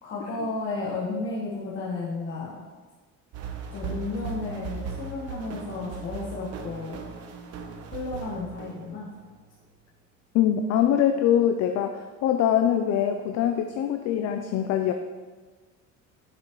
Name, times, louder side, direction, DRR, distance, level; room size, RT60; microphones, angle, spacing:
voice 1, 0.0-2.6 3.7-7.0 7.9-9.1, left 3 dB, 40° left, -5 dB, 1.4 m, -33 dB
sound 1, 3.3-9.3, right 6 dB, 50° right, 0.9 m, -38 dB
voice 2, 10.3-14.9, left 10 dB, 60° left, 6 dB, 0.6 m, -23 dB
10.5 x 6.7 x 3.1 m, 1.4 s
cardioid pair, 160°, 31 cm